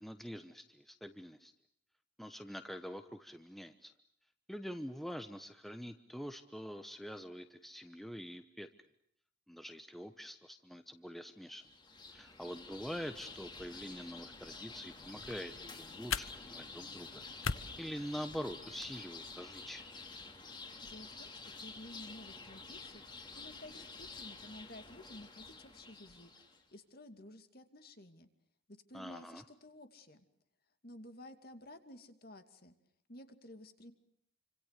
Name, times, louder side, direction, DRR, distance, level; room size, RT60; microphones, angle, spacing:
voice 1, 0.0-1.5 2.2-3.9 4.5-8.7 9.5-11.6 12.1-17.2 17.8-19.9 28.9-29.4, equal, ahead, 8 dB, 1.1 m, -45 dB
sound 1, 11.5-26.6, left 4 dB, 20° left, 2.9 m, -50 dB
sound 2, 15.0-19.0, left 6 dB, 80° left, 1.1 m, -43 dB
voice 2, 20.8-23.0 23.4-26.3 26.7-28.3 28.7-30.3 30.8-32.8 33.1-33.9, left 1 dB, 45° left, 8 dB, 2.5 m, -53 dB
29.0 x 26.0 x 6.7 m, 0.69 s
head